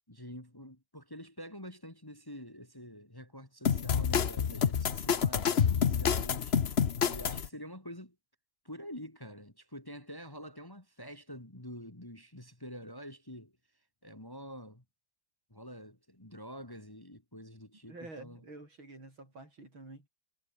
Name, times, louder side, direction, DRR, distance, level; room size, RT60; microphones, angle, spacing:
voice 1, 0.1-6.6 7.0-8.2 8.6-13.5 14.0-14.8 15.5-18.4, equal, 10° left, 2.3 m, -47 dB
sound 1, 3.7-7.5, left 7 dB, 45° left, 0.9 m, -28 dB
voice 2, 17.9-20.1, right 2 dB, 80° right, 9.0 m, -49 dB
omnidirectional pair, 2.2 m